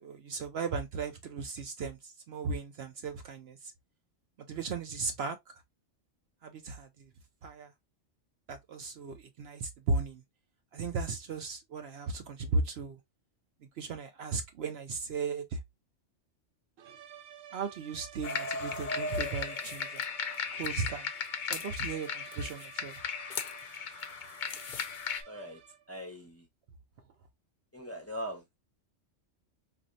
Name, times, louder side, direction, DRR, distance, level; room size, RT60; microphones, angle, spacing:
voice 1, 0.0-3.7 4.5-5.4 6.4-7.1 7.4-7.7 8.5-10.2 10.7-13.0 13.8-15.6 17.5-20.0 20.5-21.1 21.5-23.0, right 4 dB, 65° right, 0.8 m, -36 dB
sound 1, 16.8-26.0, right 9 dB, 85° right, 1.1 m, -52 dB
sound 2, 18.2-25.2, left 5 dB, 50° left, 0.6 m, -36 dB
voice 2, 25.3-25.6 25.9-26.5 27.7-28.4, equal, 15° left, 0.8 m, -40 dB
4.3 x 2.6 x 2.5 m
omnidirectional pair, 1.3 m